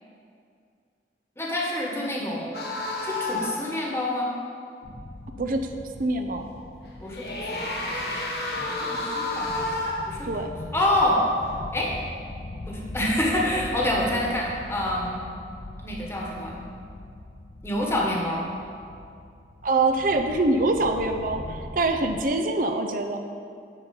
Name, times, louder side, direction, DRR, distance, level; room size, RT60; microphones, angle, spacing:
voice 1, 1.4-2.6 3.0-4.3 7.0-8.2 8.5-9.5 10.1-10.3 10.7-11.3 11.7-11.9 12.7-15.3 15.8-16.6 17.6-18.5, left 1 dB, 15° left, -3 dB, 1.3 m, -27 dB
sound 1, 2.5-3.7 6.9-10.2, left 2 dB, 60° left, 1.2 m, -30 dB
sound 2, 4.8-22.2, left 1 dB, 35° left, 0.6 m, -41 dB
voice 2, 5.4-5.7 6.0-6.4 10.2-10.5 19.6-23.2, right 2 dB, 50° right, 6 dB, 0.6 m, -24 dB
10.5 x 4.4 x 6.9 m, 2.4 s
head